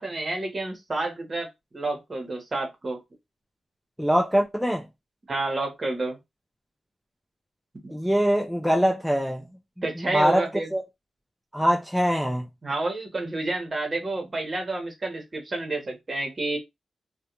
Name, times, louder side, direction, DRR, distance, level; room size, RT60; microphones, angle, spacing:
voice 1, 0.0-1.5 1.7-3.0 5.3-6.2 7.8-7.9 9.8-10.7 12.6-16.6, right 2 dB, 40° right, 1.0 m, -29 dB
voice 2, 4.0-4.9 7.9-9.4 10.0-10.8 11.5-12.5, equal, ahead, 0.4 m, -23 dB
2.4 x 2.2 x 2.9 m
cardioid pair, 80°, 0 cm